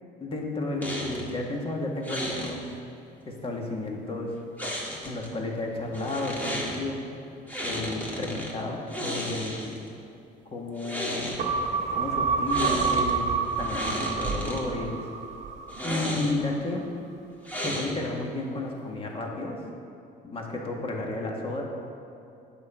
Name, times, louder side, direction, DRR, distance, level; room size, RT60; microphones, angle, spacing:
voice 1, 0.2-2.8 3.3-4.4 5.0-7.0 7.6-9.8 10.5-11.4 11.9-13.3 13.6-15.1 15.8-16.9 17.6-19.6 20.2-21.6, left 2 dB, 35° left, 0 dB, 1.7 m, -32 dB
sound 1, 0.8-1.3 2.0-2.5 4.6-5.3 5.9-6.8 7.5-8.5 8.9-9.9 10.7-11.4 12.5-13.1 13.5-14.6 15.7-16.5 17.4-18.2, equal, 10° left, 2.0 m, -33 dB
sound 2, 11.4-16.1 16.4-16.5, right 5 dB, 45° right, 0.9 m, -28 dB
9.4 x 5.4 x 7.3 m, 2.6 s
cardioid pair, 110°, 17 cm